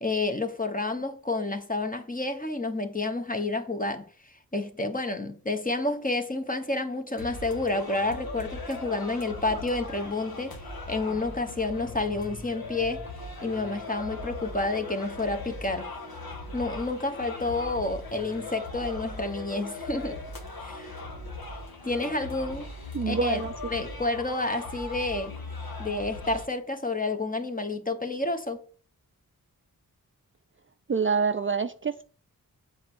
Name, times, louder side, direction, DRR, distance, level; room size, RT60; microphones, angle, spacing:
voice 1, 0.0-10.6 10.9-13.0 13.4-15.9 16.5-20.2 20.6-21.0 21.8-22.7 23.1-23.4 23.7-25.3 25.8-28.6, left 2 dB, 25° left, 1.2 m, -30 dB
sound 1, 7.2-26.5, left 2 dB, 75° left, 1.9 m, -39 dB
voice 2, 22.9-23.5 30.9-32.0, right 5 dB, 35° right, 0.5 m, -26 dB
7.6 x 4.6 x 6.1 m
wide cardioid pair, 90°, 36 cm